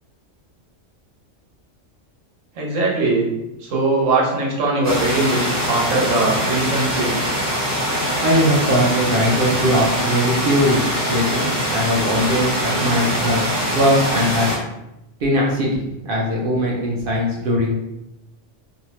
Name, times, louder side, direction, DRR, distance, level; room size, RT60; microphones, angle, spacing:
voice 1, 2.6-3.3 3.6-7.2, right 2 dB, 80° right, -3 dB, 1.1 m, -20 dB
sound 1, 4.8-14.6, equal, 15° left, 0.6 m, -23 dB
voice 2, 8.2-13.4 13.7-14.5 15.2-15.7 16.0-17.7, equal, 60° right, -3 dB, 0.7 m, -20 dB
2.7 x 2.0 x 2.9 m, 0.91 s
omnidirectional pair, 1.3 m